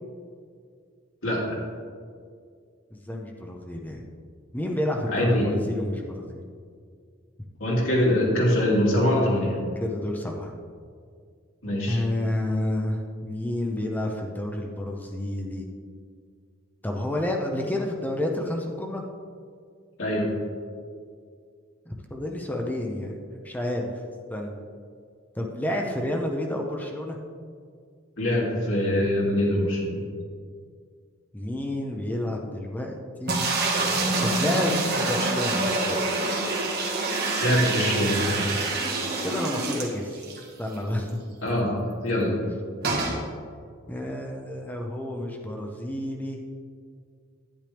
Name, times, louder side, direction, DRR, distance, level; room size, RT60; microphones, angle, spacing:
voice 1, 1.2-1.6 5.1-5.5 7.6-9.6 11.6-12.0 20.0-20.3 28.2-30.0 37.4-38.5 41.4-42.4, left 1 dB, 75° left, -5 dB, 2.9 m, -23 dB
voice 2, 2.9-4.0 4.5-6.4 9.8-10.5 11.9-15.7 16.8-19.0 21.9-24.0 24.3-24.6 25.4-27.2 31.3-33.5 34.2-36.0 39.2-40.3 40.6-41.2 43.9-46.4, left 1 dB, 10° left, 1 dB, 0.8 m, -30 dB
sound 1, 33.3-40.4 40.8-40.9 41.1-41.2 42.8-43.2, right 3 dB, 50° right, 1.7 m, -26 dB
10.5 x 9.9 x 3.5 m, 2.1 s
head